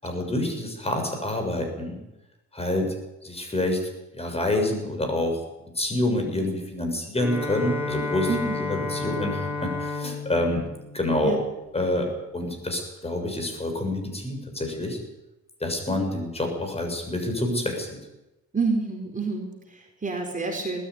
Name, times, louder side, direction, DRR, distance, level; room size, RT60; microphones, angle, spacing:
voice 1, 0.0-2.0 2.5-2.9 3.2-3.8 4.1-5.4 5.8-10.7 10.9-11.4 11.7-15.0 15.6-18.0, left 1 dB, 20° left, 4 dB, 7.0 m, -27 dB
Bowed string instrument, 7.2-11.9, left 3 dB, 5° right, 6.9 m, -32 dB
voice 2, 8.3-8.6 11.2-11.4 18.5-20.8, right 4 dB, 25° right, 2 dB, 4.5 m, -28 dB
20.0 x 14.0 x 9.8 m, 0.97 s
cardioid pair, 90°, 30 cm